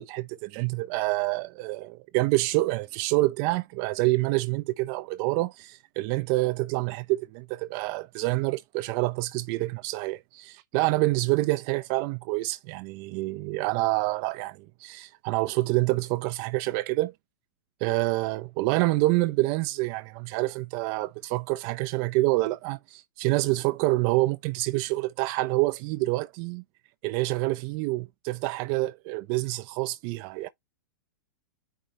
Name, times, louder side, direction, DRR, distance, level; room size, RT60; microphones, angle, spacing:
voice 1, 0.0-17.1 17.8-26.6 27.0-30.5, right 20 dB, 40° right, 0.5 m, -27 dB
9.1 x 3.5 x 2.9 m
figure-of-eight pair, 105°, 11 cm